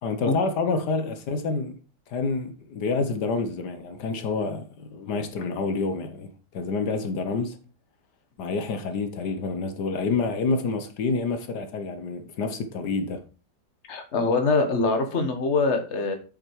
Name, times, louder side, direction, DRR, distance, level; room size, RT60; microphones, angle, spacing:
voice 1, 0.0-1.7 2.1-7.6 8.4-13.2, left 4 dB, 80° left, 1.6 m, -28 dB
voice 2, 13.9-16.2, left 3 dB, 45° left, 1.5 m, -23 dB
7.9 x 6.6 x 4.6 m
omnidirectional pair, 1.8 m